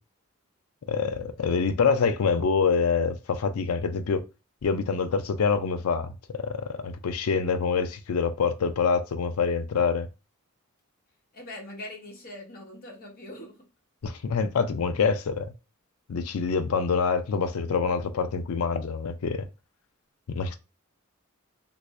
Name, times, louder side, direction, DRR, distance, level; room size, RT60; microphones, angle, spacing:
voice 1, 0.9-4.2 4.6-10.1 14.0-15.5 16.1-19.5 20.3-20.5, left 5 dB, 85° left, 0.5 m, -26 dB
voice 2, 11.3-13.6, left 1 dB, 45° left, 1.1 m, -42 dB
3.3 x 2.6 x 3.1 m
head